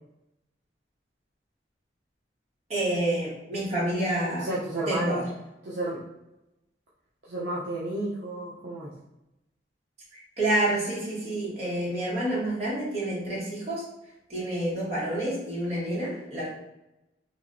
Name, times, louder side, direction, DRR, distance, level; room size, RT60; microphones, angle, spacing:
voice 1, 2.7-4.5 4.9-5.3 10.4-13.8 14.3-16.5, right 1 dB, 35° right, -8 dB, 1.4 m, -28 dB
voice 2, 4.4-5.2 5.6-6.0 7.2-8.9, right 2 dB, 60° right, -7 dB, 0.5 m, -32 dB
3.0 x 2.9 x 2.5 m, 0.93 s
head